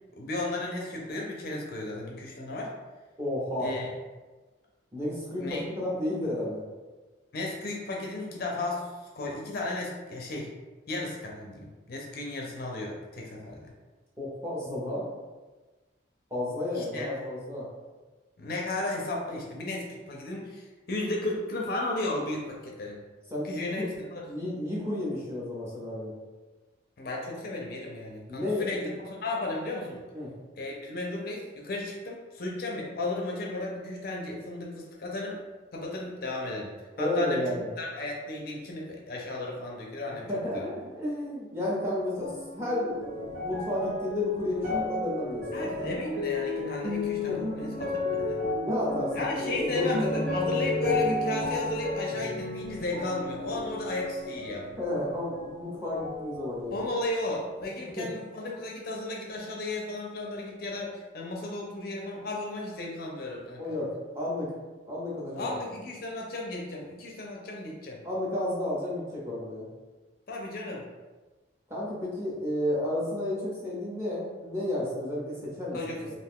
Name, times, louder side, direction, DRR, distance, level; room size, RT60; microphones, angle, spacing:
voice 1, 0.1-2.7 3.6-3.9 5.4-5.6 7.3-10.5 10.9-13.7 16.7-17.2 18.4-23.0 23.4-24.2 27.0-30.0 30.6-35.4 35.7-37.4 37.8-40.6 45.5-48.4 49.1-54.7 56.7-63.8 65.4-68.0 70.3-70.8 75.7-76.1, left 2 dB, 50° left, -1 dB, 0.4 m, -34 dB
voice 2, 3.2-3.7 4.9-6.6 14.2-15.1 16.3-17.7 23.3-23.9 24.3-26.1 28.3-28.9 30.1-30.3 37.0-37.7 40.1-45.7 47.3-47.5 48.6-50.2 54.8-56.9 57.8-58.1 63.6-64.6 64.9-65.5 68.0-69.7 71.7-75.8, left 1 dB, 15° right, -7 dB, 0.8 m, -32 dB
sound 1, 42.2-55.7 56.0-56.9 57.6-57.7, left 2 dB, 80° right, 0.9 m, -33 dB
2.5 x 2.3 x 3.5 m, 1.2 s
head